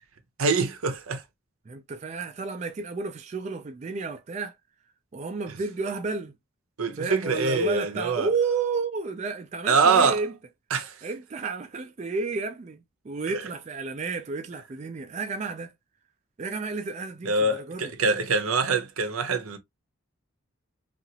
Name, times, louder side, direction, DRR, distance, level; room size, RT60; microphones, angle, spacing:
voice 1, 0.4-1.2 6.8-8.3 9.7-10.2 10.7-11.0 17.3-19.6, right 4 dB, 85° right, 0.7 m, -24 dB
voice 2, 1.7-4.6 5.1-6.4 7.0-10.3 11.0-15.7 16.4-17.9, right 4 dB, 35° right, 0.3 m, -31 dB
2.8 x 2.5 x 2.7 m
head